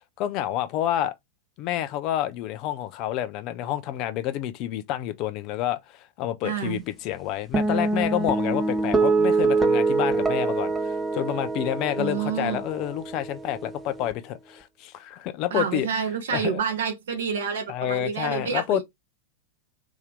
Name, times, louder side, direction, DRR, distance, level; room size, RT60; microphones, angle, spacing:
voice 1, 0.2-1.1 1.6-15.9 16.3-16.6 17.7-18.8, left 12 dB, 40° left, 0.6 m, -29 dB
voice 2, 6.4-6.8 12.0-12.6 15.5-18.8, right 7 dB, 60° right, 0.9 m, -28 dB
sound 1, 7.5-14.1, right 3 dB, 15° right, 0.8 m, -25 dB
3.5 x 2.8 x 3.4 m
figure-of-eight pair, 90°, 0 cm